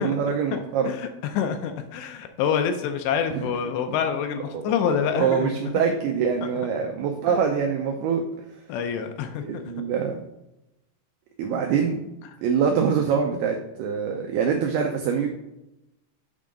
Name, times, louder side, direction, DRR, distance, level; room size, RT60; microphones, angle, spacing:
voice 1, 0.0-0.9 3.3-3.5 4.5-8.2 9.4-10.2 11.4-12.1 12.4-15.3, right 6 dB, 90° right, 3 dB, 2.2 m, -24 dB
voice 2, 0.9-5.5 7.3-7.4 8.7-9.6, left 7 dB, 80° left, 6 dB, 2.6 m, -27 dB
8.4 x 3.7 x 5.0 m, 0.91 s
omnidirectional pair, 5.3 m